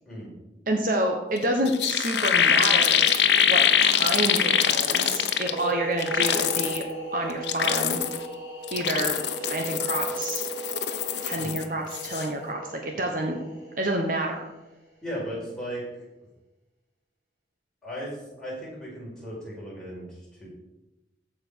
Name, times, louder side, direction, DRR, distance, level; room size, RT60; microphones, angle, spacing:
voice 1, 0.7-3.0 3.5-6.8 7.1-8.0 8.7-9.2 9.5-10.4 11.2-13.4 13.8-14.5, right 1 dB, 45° right, 2 dB, 1.1 m, -28 dB
sound 1, 1.4-1.5 1.6-5.7 6.0-6.8 7.3-8.2 8.6-11.6 11.9-12.3, left 8 dB, 65° left, 0.9 m, -23 dB
sound 2, 5.3-14.8, right 3 dB, 20° right, 3.5 m, -37 dB
voice 2, 15.0-15.8 17.8-20.5, equal, 5° left, -7 dB, 4.7 m, -36 dB
15.0 x 5.1 x 6.3 m, 1.0 s
head